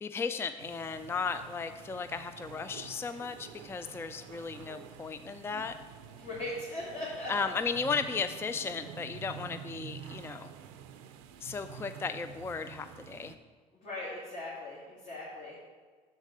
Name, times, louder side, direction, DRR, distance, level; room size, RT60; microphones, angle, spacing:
voice 1, 0.0-5.7 7.3-10.5 11.4-13.3, left 5 dB, 15° left, 10 dB, 0.3 m, -35 dB
sound 1, 0.6-13.4, right 8 dB, 80° right, 0.5 m, -48 dB
voice 2, 6.2-7.5 13.7-15.6, left 1 dB, 50° left, -7 dB, 2.3 m, -39 dB
6.5 x 4.7 x 6.6 m, 1.5 s
hypercardioid pair, 65°, 17 cm